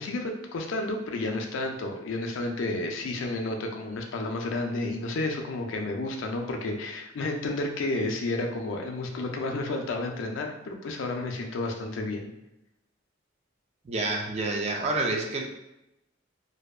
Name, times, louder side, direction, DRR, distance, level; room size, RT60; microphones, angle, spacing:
voice 1, 0.0-12.3, left 2 dB, 80° left, 3 dB, 0.4 m, -31 dB
voice 2, 13.8-15.4, right 2 dB, 35° right, 1 dB, 0.3 m, -28 dB
2.6 x 2.2 x 2.3 m, 0.91 s
head